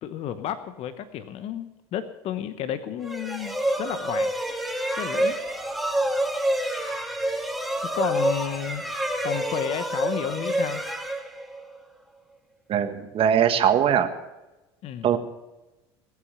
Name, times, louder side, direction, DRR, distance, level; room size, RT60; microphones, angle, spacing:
voice 1, 0.0-4.4 5.0-5.4 7.9-8.8 9.2-10.8 14.8-15.1, left 9 dB, 50° left, 11 dB, 1.0 m, -32 dB
sound 1, 3.0-11.8, right 1 dB, ahead, 1.9 m, -28 dB
voice 2, 12.7-14.1 15.0-15.2, right 9 dB, 45° right, 7 dB, 1.7 m, -21 dB
19.5 x 8.4 x 6.9 m, 1.0 s
hypercardioid pair, 80°, 13 cm